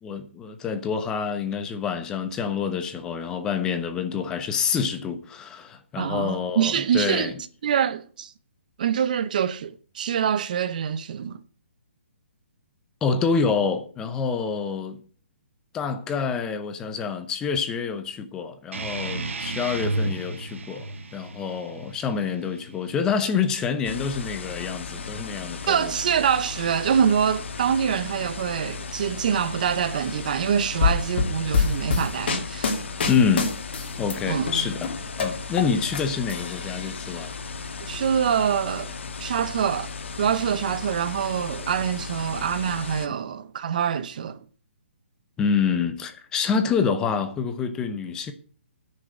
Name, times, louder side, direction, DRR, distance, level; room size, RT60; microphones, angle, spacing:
voice 1, 0.0-7.3 13.0-15.0 15.7-20.9 21.1-25.9 33.1-33.5 34.0-34.9 35.2-37.3 45.4-48.3, left 6 dB, 10° left, 0.8 m, -27 dB
voice 2, 6.0-7.3 7.6-8.3 8.8-11.4 25.7-32.7 34.3-34.5 37.8-38.9 39.2-39.9 40.2-44.5, right 8 dB, 40° right, 0.7 m, -25 dB
sound 1, 18.7-23.8, right 2 dB, 80° right, 1.8 m, -33 dB
sound 2, 23.8-43.1, left 4 dB, 65° left, 1.5 m, -36 dB
sound 3, 30.8-34.1 34.5-36.0 36.3-37.2, left 4 dB, 50° left, 2.9 m, -25 dB
10.0 x 6.6 x 7.7 m
hypercardioid pair, 170°, 7 cm